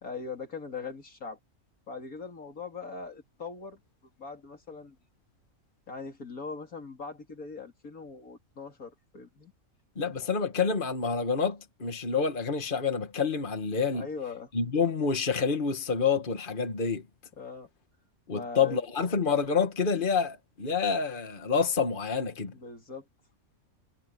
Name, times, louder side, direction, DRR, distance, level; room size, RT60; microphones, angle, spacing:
voice 1, 0.0-1.4 1.9-3.8 4.2-5.0 5.9-9.5 13.9-14.5 17.4-17.7 18.3-18.8 22.5-23.1, left 4 dB, 85° left, 3.6 m, -41 dB
voice 2, 10.0-14.1 14.5-17.0 18.3-22.5, left 5 dB, 35° left, 1.9 m, -28 dB
omnidirectional pair, 1.5 m